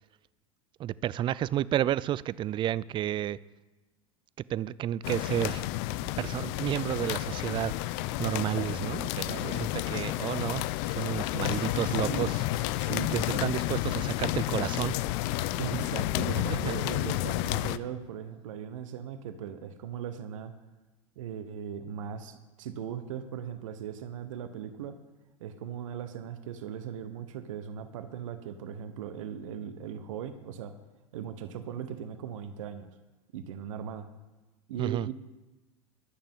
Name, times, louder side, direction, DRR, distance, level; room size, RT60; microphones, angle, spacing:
voice 1, 0.8-3.4 4.5-5.6 6.2-7.8 8.2-12.4 12.7-12.9 13.4-15.0 16.5-16.6 34.8-35.1, right 12 dB, 25° right, 21 dB, 0.4 m, -31 dB
sound 1, 5.0-17.8, left 16 dB, 50° left, 0.5 m, -31 dB
voice 2, 11.4-12.3 12.8-13.5 15.6-20.5 21.2-25.0 25.4-30.7 31.1-32.9 33.3-34.1 34.7-35.1, right 9 dB, 65° right, 9 dB, 1.1 m, -38 dB
22.5 x 8.8 x 3.7 m, 1.1 s
figure-of-eight pair, 85°, 18 cm